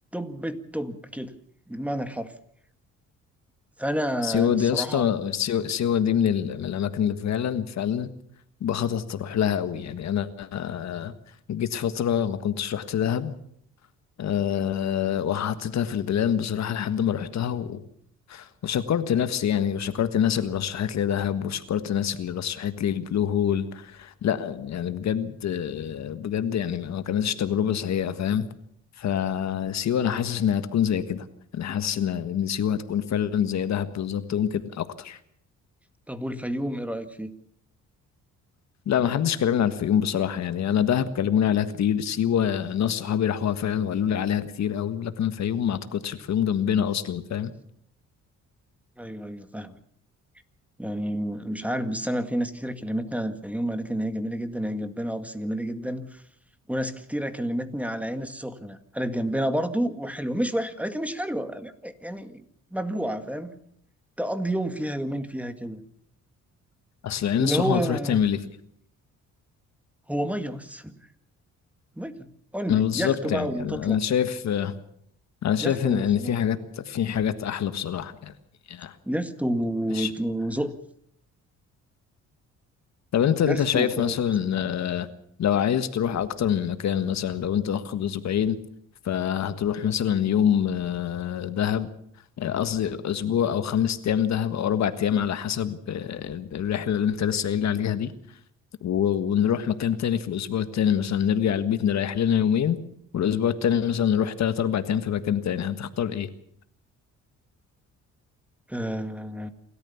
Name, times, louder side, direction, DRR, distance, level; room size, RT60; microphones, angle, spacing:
voice 1, 0.1-1.3 1.7-2.3 3.8-5.1 36.1-37.3 49.0-49.8 50.8-56.2 56.7-62.4 62.7-63.6 64.2-65.8 67.4-68.2 70.1-71.0 72.0-74.0 75.6-76.4 79.1-80.7 83.4-84.2 108.7-109.5, equal, 5° right, 9 dB, 1.9 m, -30 dB
voice 2, 4.2-8.1 8.6-11.1 11.5-13.3 14.2-17.8 18.3-28.5 29.0-31.3 31.5-35.2 38.9-47.5 67.0-68.4 72.7-74.7 75.4-78.3 78.7-79.0 79.9-80.1 83.1-85.1 85.4-88.6 89.1-91.9 92.4-98.1 98.8-102.8 103.1-106.3, left 9 dB, 65° left, 11 dB, 1.6 m, -25 dB
28.0 x 13.5 x 7.1 m, 0.68 s
cardioid pair, 90°, 30 cm